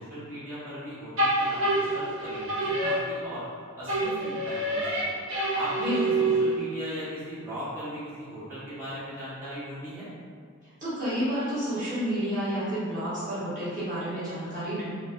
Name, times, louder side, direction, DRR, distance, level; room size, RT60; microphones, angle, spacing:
voice 1, 0.0-3.4 3.8-5.1 5.5-10.1, equal, 10° right, -14 dB, 1.1 m, -38 dB
sound 1, 1.2-3.5 3.9-6.7, right 2 dB, 70° right, 0.9 m, -27 dB
voice 2, 10.8-14.9, equal, 40° right, -13 dB, 1.0 m, -30 dB
3.2 x 2.6 x 2.4 m, 2.1 s
head